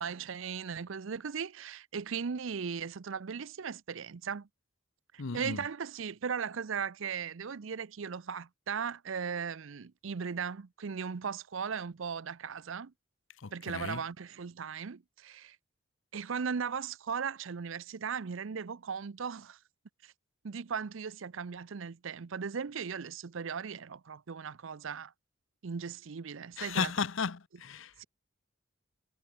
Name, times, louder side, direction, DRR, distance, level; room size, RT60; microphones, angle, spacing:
voice 1, 0.0-4.5 5.1-12.9 13.5-15.6 16.1-19.6 20.0-20.1 20.4-25.1 25.6-26.9 28.0-28.1, right 6 dB, 70° right, 0.6 m, -37 dB
voice 2, 5.2-5.6 13.4-14.0 26.6-28.0, left 5 dB, 70° left, 0.8 m, -35 dB
head